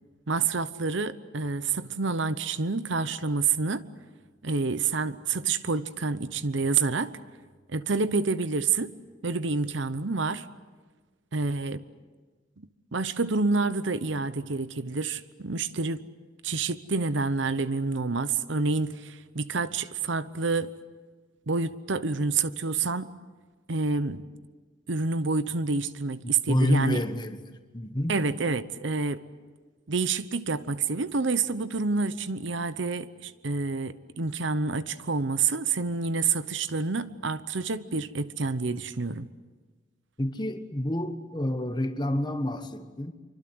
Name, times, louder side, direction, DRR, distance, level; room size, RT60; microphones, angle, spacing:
voice 1, 0.3-3.8 4.4-7.2 7.7-8.9 9.2-10.5 11.3-11.8 12.6-16.0 16.4-20.7 21.5-23.1 23.7-24.3 24.9-27.0 28.1-29.2 29.9-39.3, right 4 dB, 65° right, 0.9 m, -28 dB
voice 2, 26.2-27.4 27.7-28.2 40.2-43.1, left 1 dB, 20° left, 1.3 m, -28 dB
26.0 x 24.5 x 7.9 m
head